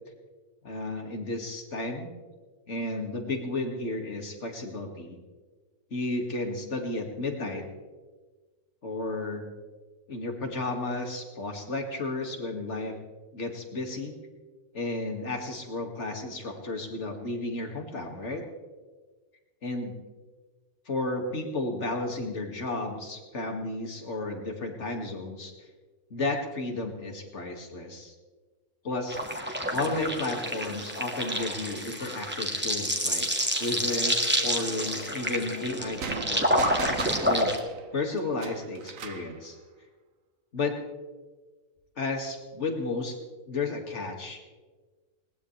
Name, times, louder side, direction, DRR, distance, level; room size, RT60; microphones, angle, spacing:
voice 1, 0.6-2.1 2.7-5.2 5.9-7.7 8.8-9.5 10.1-13.0 13.3-14.1 14.7-18.4 19.6-19.9 20.9-25.5 26.1-28.1 28.8-29.2 29.7-33.3 33.5-37.5 37.9-39.6 40.5-40.8 42.0-43.2 43.5-44.4, left 2 dB, 50° left, 3 dB, 2.5 m, -33 dB
sound 1, 29.1-37.6, equal, 5° right, 1.7 m, -28 dB
sound 2, 36.0-39.3, right 6 dB, 60° right, 1.3 m, -37 dB
20.5 x 19.0 x 3.3 m, 1.3 s
omnidirectional pair, 1.6 m